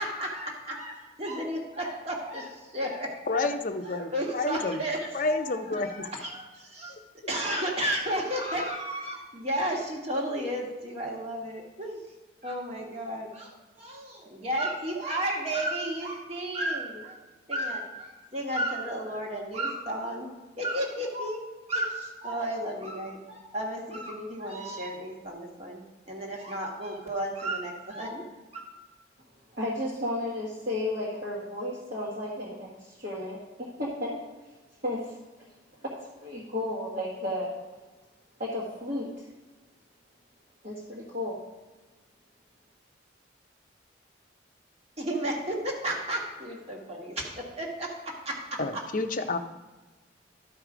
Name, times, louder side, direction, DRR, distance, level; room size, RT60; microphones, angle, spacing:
voice 1, 0.0-3.5 3.9-6.9 7.3-12.0 12.4-17.2 17.5-20.3 20.6-21.4 21.7-25.8 26.1-28.2 28.5-28.6 45.0-48.8, right 1 dB, 35° right, -1 dB, 1.5 m, -33 dB
voice 2, 3.3-4.8 5.1-6.1 6.9-7.0 48.6-49.4, left 3 dB, 45° left, 7 dB, 0.6 m, -29 dB
voice 3, 29.5-34.2 34.8-35.2 35.8-37.6 38.4-39.3 40.6-41.4, left 1 dB, 50° right, -6 dB, 1.6 m, -33 dB
12.5 x 4.8 x 4.9 m, 1.2 s
head